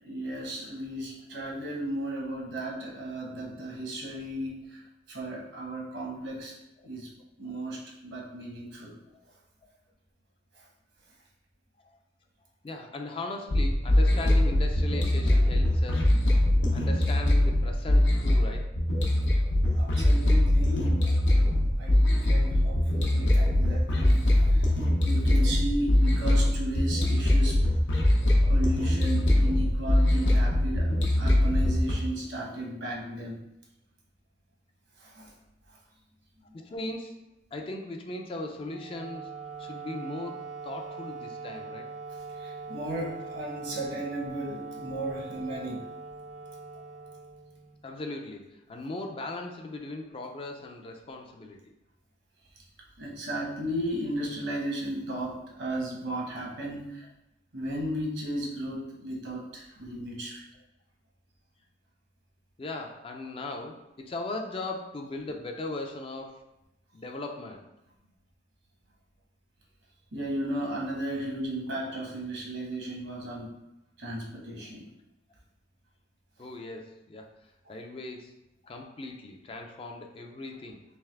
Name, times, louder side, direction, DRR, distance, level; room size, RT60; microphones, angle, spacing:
voice 1, 0.0-4.8 5.1-6.5 6.8-7.1 7.4-8.9 19.7-21.0 21.8-24.7 25.0-27.6 28.5-33.4 35.0-35.3 42.3-45.8 53.0-57.1 57.5-60.4 70.1-73.5 74.0-74.8 77.6-77.7, right 1 dB, 75° right, -3 dB, 1.1 m, -35 dB
voice 2, 12.6-16.2 16.7-18.7 21.0-21.1 21.9-22.0 36.5-39.3 39.6-41.9 46.8-47.0 47.8-51.7 56.5-56.6 62.6-66.4 66.9-67.7 76.4-77.3 77.7-78.4 78.6-80.8, left 2 dB, 30° left, 4 dB, 0.4 m, -38 dB
sound 1, 13.5-31.9, left 1 dB, 75° left, 0.7 m, -22 dB
Wind instrument woodwind instrument, 38.6-47.9, right 4 dB, 40° right, 0.4 m, -42 dB
3.5 x 3.1 x 3.3 m, 0.89 s
head